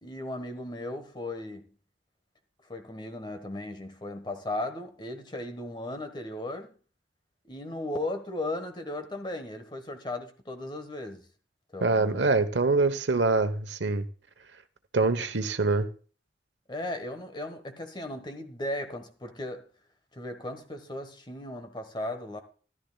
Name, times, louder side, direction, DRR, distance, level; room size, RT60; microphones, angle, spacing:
voice 1, 0.0-1.7 2.7-6.7 7.4-11.3 11.7-12.3 16.7-19.6 20.1-22.4, left 1 dB, 25° left, 1.3 m, -36 dB
voice 2, 11.8-14.1 14.9-15.9, right 3 dB, 85° right, 1.1 m, -24 dB
13.5 x 12.5 x 2.3 m
head